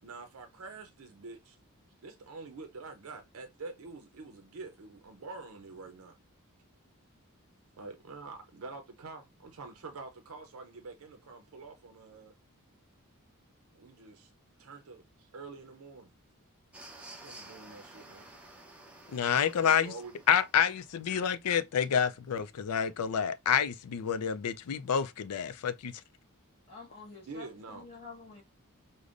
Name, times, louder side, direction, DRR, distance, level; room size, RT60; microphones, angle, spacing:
voice 1, 0.0-1.6 2.0-6.2 7.8-12.3 13.7-14.3 14.6-16.1 17.2-18.3 19.6-20.2 27.3-27.9, right 3 dB, 70° right, 0.6 m, -46 dB
sound 1, 16.7-20.9, right 2 dB, 5° right, 0.7 m, -52 dB
voice 2, 19.1-19.9 20.3-26.0, left 8 dB, 75° left, 0.4 m, -28 dB
voice 3, 26.7-28.4, left 4 dB, 25° left, 1.5 m, -49 dB
5.0 x 2.1 x 2.4 m
head